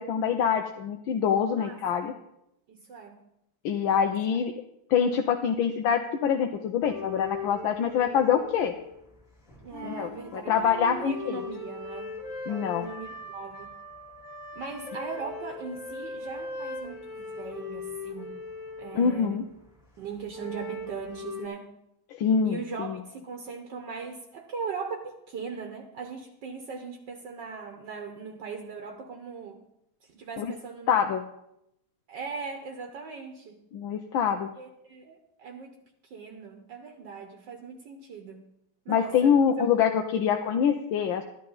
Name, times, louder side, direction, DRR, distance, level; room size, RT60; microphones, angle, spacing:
voice 1, 0.0-2.1 3.6-4.5 4.9-8.7 9.8-11.4 12.5-12.9 18.9-19.4 22.1-23.0 30.4-30.5 30.9-31.2 33.7-34.5 38.9-41.2, left 7 dB, 80° left, 4 dB, 1.4 m, -25 dB
voice 2, 2.7-3.2 9.6-12.1 12.6-13.7 14.5-18.4 18.8-19.4 20.0-21.7 22.4-29.6 30.1-30.9 32.1-33.6 34.6-35.7 36.1-38.4 38.8-39.7, right 5 dB, 65° right, 4 dB, 1.6 m, -39 dB
sound 1, 6.8-9.2 9.5-19.7 20.3-21.5, left 3 dB, 15° left, 2.0 m, -39 dB
13.0 x 10.5 x 3.9 m, 0.81 s
omnidirectional pair, 2.2 m